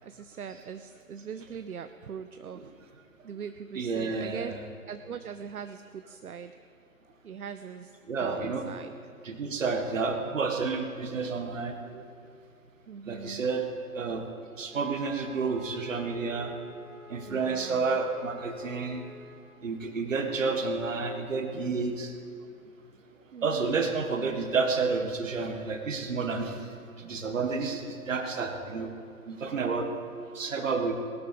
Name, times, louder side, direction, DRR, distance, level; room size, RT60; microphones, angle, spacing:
voice 1, 0.0-2.7 3.2-4.6 4.9-6.6 7.2-7.9 8.2-9.0 12.9-13.5 17.3-18.0 23.3-23.8, right 7 dB, 75° right, 9 dB, 0.7 m, -41 dB
voice 2, 3.8-4.5 8.1-8.7 9.2-12.0 13.1-13.6 13.9-14.3 14.6-16.5 17.1-19.0 19.6-22.1 23.4-26.6 27.0-28.9 29.3-29.9 30.4-30.9, right 4 dB, 55° right, 6 dB, 1.7 m, -30 dB
Wind instrument woodwind instrument, 14.7-19.5, left 3 dB, ahead, 1.2 m, -50 dB
18.5 x 12.0 x 5.1 m, 2.4 s
figure-of-eight pair, 140°, 45 cm